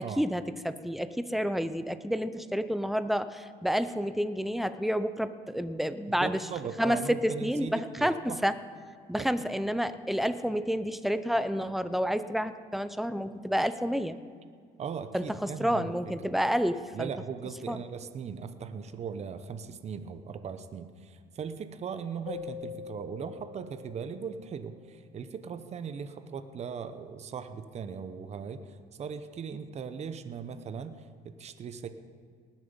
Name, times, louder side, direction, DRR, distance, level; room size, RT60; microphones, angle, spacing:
voice 1, 0.0-6.5 6.8-8.6 9.1-14.2 15.1-17.1 17.7-17.8, equal, ahead, 12 dB, 0.5 m, -29 dB
voice 2, 6.1-8.4 9.1-9.3 14.8-16.3 16.9-31.9, right 6 dB, 40° right, 10 dB, 0.8 m, -39 dB
Keyboard (musical), 22.3-25.0, left 8 dB, 90° left, 1.5 m, -44 dB
19.5 x 7.4 x 5.3 m, 2.1 s
cardioid pair, 110°, 17 cm